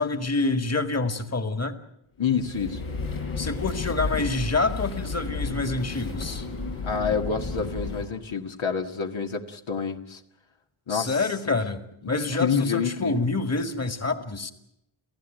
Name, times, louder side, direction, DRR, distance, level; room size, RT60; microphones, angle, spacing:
voice 1, 0.0-1.8 3.4-6.5 10.9-14.5, left 3 dB, 30° left, 9 dB, 2.1 m, -27 dB
voice 2, 2.2-2.9 6.8-10.2 10.9-11.6 12.0-12.1 12.4-13.2, left 6 dB, 65° left, 3 dB, 1.9 m, -28 dB
sound 1, 2.3-8.1, left 4 dB, 85° left, 5.6 m, -32 dB
28.5 x 15.5 x 9.2 m, 0.80 s
cardioid pair, 70°, 49 cm